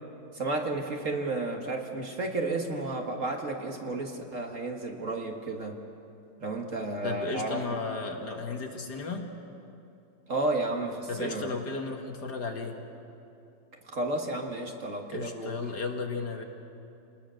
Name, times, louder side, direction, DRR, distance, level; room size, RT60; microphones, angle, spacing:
voice 1, 0.3-5.8 6.4-7.6 10.3-11.5 13.9-15.6, right 2 dB, 45° right, 2 dB, 1.8 m, -32 dB
voice 2, 7.0-9.3 11.1-12.8 15.1-16.4, left 4 dB, 60° left, 3 dB, 2.2 m, -34 dB
28.0 x 19.5 x 6.4 m, 2.7 s
omnidirectional pair, 2.1 m